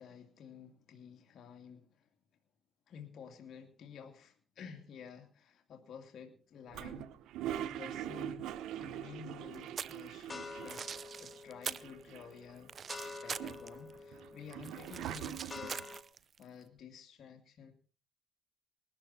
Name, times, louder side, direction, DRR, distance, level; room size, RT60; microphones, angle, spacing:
voice 1, 0.0-2.1 2.9-7.1 7.6-8.5 8.8-10.9 11.2-12.7 13.2-15.8 16.4-17.7, left 7 dB, 65° left, 4 dB, 2.5 m, -51 dB
Toilet flush, 6.7-11.1 11.4-11.5 11.7-12.5 13.0-15.8, right 11 dB, 90° right, 0.9 m, -43 dB
sound 1, 8.7-9.1 9.7-16.0, left 3 dB, 30° left, 2.2 m, -49 dB
sound 2, 9.5-10.1 10.5-11.9 12.2-13.9 14.2-16.4, right 6 dB, 50° right, 0.7 m, -43 dB
20.0 x 13.5 x 4.3 m, 0.37 s
cardioid pair, 90°, 0 cm